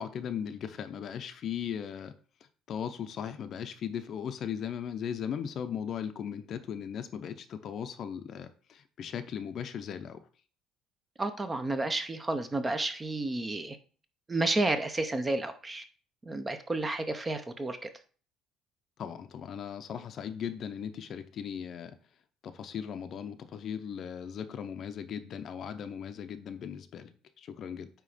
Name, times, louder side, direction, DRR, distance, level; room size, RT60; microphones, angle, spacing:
voice 1, 0.0-2.1 2.7-10.2 19.0-21.9 22.4-27.9, left 8 dB, 40° left, 9 dB, 0.7 m, -38 dB
voice 2, 11.2-13.8 14.3-15.8 16.2-17.9, right 2 dB, 15° right, 9 dB, 0.7 m, -31 dB
9.2 x 3.1 x 5.0 m, 0.40 s
cardioid pair, 150°, 0 cm